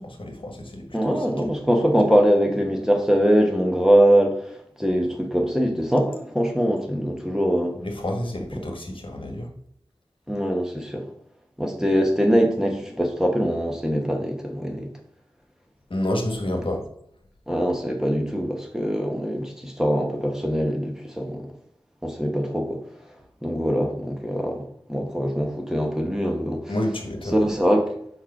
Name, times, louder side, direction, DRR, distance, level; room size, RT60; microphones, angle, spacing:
voice 1, 0.0-1.5 7.8-9.5 15.9-16.8 26.7-27.5, left 1 dB, 60° left, 1.4 m, -29 dB
voice 2, 0.9-7.8 10.3-11.1 11.6-14.9 17.5-21.5 22.0-22.8 23.4-26.7 27.3-27.9, equal, 5° right, 1.0 m, -22 dB
4.7 x 4.4 x 5.8 m
wide cardioid pair, 60°, 10 cm